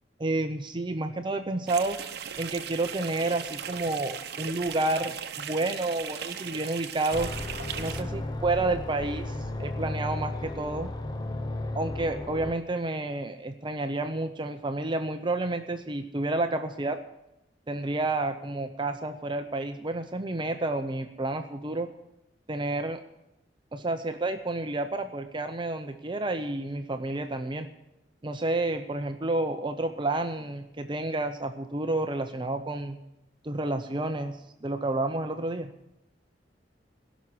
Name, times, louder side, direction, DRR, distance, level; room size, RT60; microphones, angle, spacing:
voice 1, 0.2-2.0 2.4-7.3 7.8-10.9 11.7-17.0 17.7-21.9 22.5-23.0 23.7-27.7 28.2-33.0 33.4-35.7, right 2 dB, 25° right, 7 dB, 0.6 m, -30 dB
sound 1, 1.7-8.0, right 8 dB, 60° right, 0.9 m, -38 dB
sound 2, 7.1-12.5, left 1 dB, 25° left, 0.8 m, -34 dB
16.5 x 6.2 x 9.8 m, 0.85 s
head